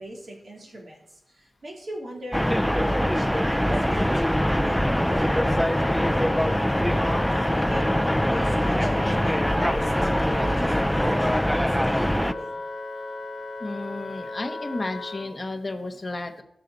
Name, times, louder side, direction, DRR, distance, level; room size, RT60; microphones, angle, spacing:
voice 1, 0.0-2.5 2.9-6.5 7.4-11.2 11.5-12.6, equal, 50° right, -2 dB, 3.2 m, -38 dB
sound 1, 2.3-12.3, equal, 5° left, 0.3 m, -23 dB
Wind instrument woodwind instrument, 5.0-15.3, left 3 dB, 65° left, 1.1 m, -35 dB
voice 2, 13.6-16.4, left 2 dB, 20° left, 4 dB, 1.2 m, -32 dB
19.5 x 6.8 x 4.0 m, 0.79 s
wide cardioid pair, 165°, 0 cm